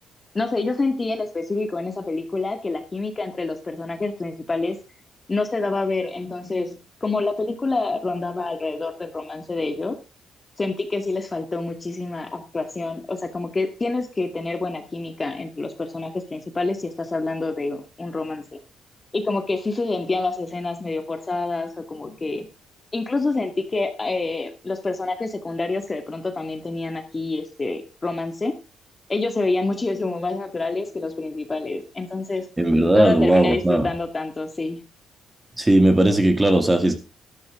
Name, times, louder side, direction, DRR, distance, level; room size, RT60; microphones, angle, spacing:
voice 1, 0.3-4.8 5.3-10.0 10.6-18.6 19.1-22.5 22.9-28.6 29.1-32.5 32.9-34.8, left 3 dB, 25° left, 7 dB, 2.0 m, -27 dB
voice 2, 32.6-33.9 35.6-37.0, right 1 dB, 15° right, 7 dB, 2.4 m, -17 dB
12.5 x 12.0 x 3.7 m, 0.29 s
cardioid pair, 90°, 0 cm